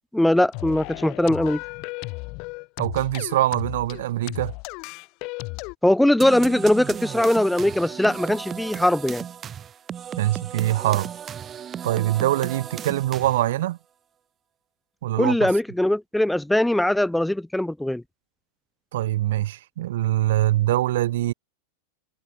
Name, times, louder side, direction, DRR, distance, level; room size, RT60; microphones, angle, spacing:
voice 1, 0.0-1.6 5.8-9.2 15.2-18.0, left 1 dB, 5° left, 4.4 m, -21 dB
sound 1, 0.5-5.7, left 28 dB, 50° left, 2.3 m, -35 dB
voice 2, 2.8-4.6 10.2-11.1 11.8-13.8 15.0-15.5 18.9-21.3, right 14 dB, 75° right, 1.9 m, -23 dB
sound 2, 6.2-13.6, right 8 dB, 25° right, 2.6 m, -35 dB
hypercardioid pair, 125°, 0 cm